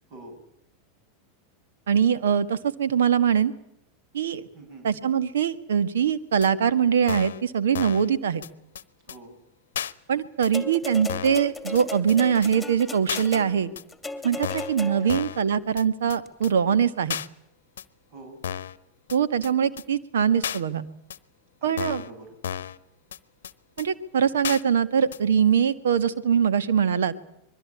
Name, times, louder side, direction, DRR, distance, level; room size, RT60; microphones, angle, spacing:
voice 1, 0.1-0.4 4.5-4.9 9.0-9.4 14.8-15.2 18.1-18.4 21.6-22.4, right 2 dB, 50° right, 6 dB, 7.5 m, -45 dB
voice 2, 1.9-3.5 4.1-4.4 4.8-8.4 10.1-13.7 14.2-17.2 19.1-20.8 21.6-22.0 23.8-27.1, right 7 dB, 70° right, 13 dB, 1.6 m, -23 dB
sound 1, 6.4-6.5 7.1-7.4 7.7-8.1 8.4-8.5 8.7-8.8 9.1-9.2 9.7-9.9 10.4-10.5 11.1-11.4 11.7-11.8 12.1-12.2 12.4-12.5 13.1-13.3 13.8-13.9 14.4-14.8 15.1-15.4 15.8-15.9 16.1-16.2 16.4-16.5 17.1-17.3 17.8-17.9 18.4-18.8 19.1-19.2 19.4-19.5 19.8-19.9 20.4-20.6 21.1-21.2 21.8-22.1 22.4-22.8 23.1-23.2 23.4-23.5 23.8-23.9 24.4-24.6 25.1-25.2, left 9 dB, 70° left, 0.9 m, -32 dB
sound 2, 10.5-15.3 16.3-16.4, left 2 dB, 5° left, 2.6 m, -36 dB
24.5 x 22.0 x 8.6 m, 0.79 s
figure-of-eight pair, 85°, 0 cm